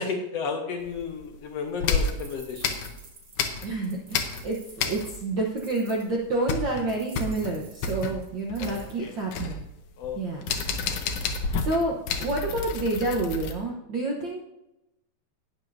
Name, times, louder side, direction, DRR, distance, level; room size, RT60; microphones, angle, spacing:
voice 1, 0.0-2.8 8.6-9.1 10.0-10.2, left 5 dB, 65° left, 3 dB, 2.0 m, -33 dB
sound 1, 0.8-1.4 1.8-3.8 4.1-5.4 5.6-5.7 6.1-13.5, left 4 dB, 90° left, 2.5 m, -30 dB
sound 2, 2.0-6.1 6.9-9.0, right 4 dB, 40° right, 2.0 m, -50 dB
voice 2, 3.6-9.6 10.1-10.5 11.6-14.4, right 2 dB, 60° right, -1 dB, 1.2 m, -29 dB
18.0 x 7.3 x 2.7 m, 0.93 s
omnidirectional pair, 3.5 m